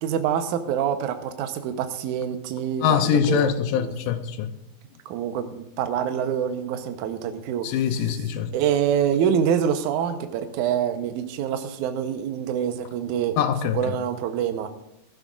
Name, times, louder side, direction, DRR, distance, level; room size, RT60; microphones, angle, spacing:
voice 1, 0.0-3.0 3.3-3.9 5.1-7.7 8.5-13.4 13.7-14.7, right 8 dB, 70° right, 2.1 m, -26 dB
voice 2, 2.8-4.5 7.6-8.6 13.4-14.0, left 8 dB, 75° left, 2.2 m, -23 dB
18.0 x 12.0 x 2.5 m
omnidirectional pair, 4.2 m